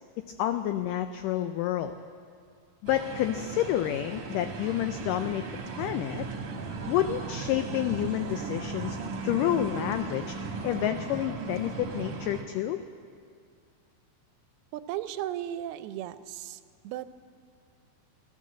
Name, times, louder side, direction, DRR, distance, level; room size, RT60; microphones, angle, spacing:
voice 1, 0.4-1.9 2.8-5.4 5.8-6.3 6.9-9.0 9.2-10.4 10.6-12.8, left 12 dB, 90° left, 9 dB, 1.9 m, -29 dB
sound 1, 2.9-12.4, right 4 dB, 50° right, 1.8 m, -37 dB
voice 2, 14.7-17.2, right 12 dB, 90° right, 12 dB, 2.6 m, -36 dB
16.0 x 12.5 x 7.4 m, 2.3 s
omnidirectional pair, 4.4 m